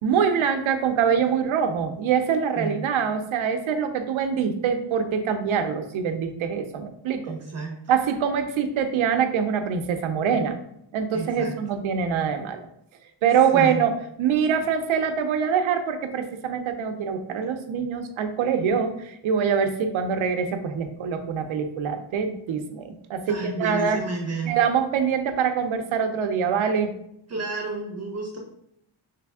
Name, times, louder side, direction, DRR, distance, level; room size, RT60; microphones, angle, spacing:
voice 1, 0.0-7.3 7.9-10.6 10.9-12.6 13.2-13.9 14.2-24.0 24.5-26.9, right 7 dB, 75° right, 7 dB, 0.6 m, -24 dB
voice 2, 7.2-7.7 11.1-11.5 13.5-13.8 23.3-24.5 27.3-28.4, right 3 dB, 30° right, 0 dB, 0.8 m, -31 dB
3.3 x 3.3 x 3.5 m, 0.75 s
wide cardioid pair, 130°, 48 cm